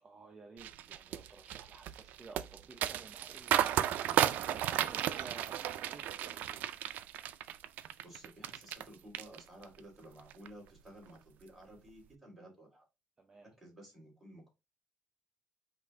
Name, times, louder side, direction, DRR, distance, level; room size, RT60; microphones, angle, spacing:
voice 1, 0.0-6.7 13.2-13.5, right 3 dB, 25° right, 0.7 m, -54 dB
sound 1, 0.6-8.8 9.1-9.8 10.2-10.5, right 11 dB, 75° right, 0.4 m, -34 dB
voice 2, 8.0-12.8 13.4-14.5, right 1 dB, ahead, 2.7 m, -54 dB
5.3 x 2.6 x 3.7 m
cardioid pair, 145°, 3 cm